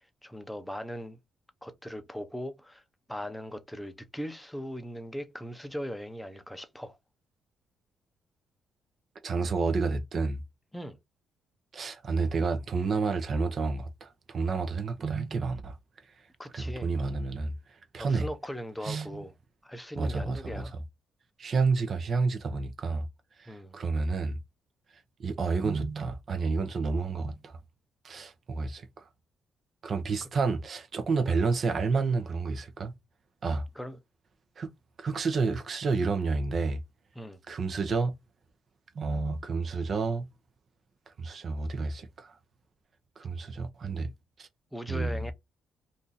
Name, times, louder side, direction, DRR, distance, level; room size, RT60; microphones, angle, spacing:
voice 1, 0.2-1.2 1.6-2.8 3.1-7.0 10.7-11.0 16.4-16.9 18.0-19.3 19.6-20.7 23.5-23.8 30.2-30.3 33.8-34.0 37.2-37.4 44.7-45.3, equal, 5° left, 0.6 m, -39 dB
voice 2, 9.2-10.4 11.7-15.8 16.5-17.5 17.9-18.3 18.8-19.2 20.0-20.6 21.4-23.1 23.4-24.4 25.2-27.5 28.0-28.9 29.8-32.9 33.4-33.6 34.6-34.7 35.0-36.8 37.5-38.1 39.0-40.2 41.2-42.4 43.2-44.1 44.4-44.5 44.9-45.2, right 4 dB, 50° right, 0.7 m, -30 dB
2.6 x 2.5 x 3.9 m
cardioid pair, 90°, 0 cm